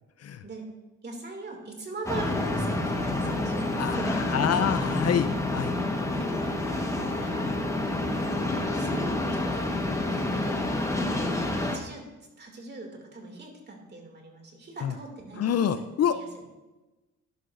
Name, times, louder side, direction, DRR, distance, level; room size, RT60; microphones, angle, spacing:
voice 1, 1.0-4.8 6.1-7.5 8.1-8.4 8.7-9.8 10.1-12.0 12.4-16.4, right 3 dB, 35° right, 1 dB, 2.6 m, -42 dB
sound 1, 2.1-11.8, left 2 dB, 10° left, 1.3 m, -28 dB
voice 2, 3.8-5.7 14.8-14.9 15.4-16.2, left 8 dB, 55° left, 10 dB, 0.6 m, -27 dB
12.0 x 11.5 x 2.6 m, 1.1 s
cardioid pair, 90°, 30 cm